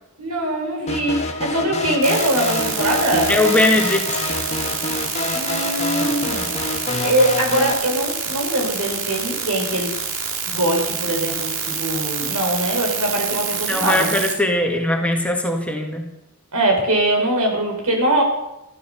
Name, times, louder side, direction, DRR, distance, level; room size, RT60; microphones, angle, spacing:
voice 1, 0.2-3.3 5.3-6.5 7.0-9.9 10.5-14.1 16.5-18.2, right 1 dB, 90° right, 1 dB, 5.4 m, -22 dB
sound 1, 0.9-7.7, left 2 dB, 30° left, 1.6 m, -26 dB
sound 2, 2.0-14.3, right 6 dB, 60° right, 2.4 m, -27 dB
voice 2, 3.3-4.2 13.7-16.0, left 1 dB, 5° left, 2 dB, 1.7 m, -20 dB
14.0 x 13.0 x 7.0 m, 0.88 s
head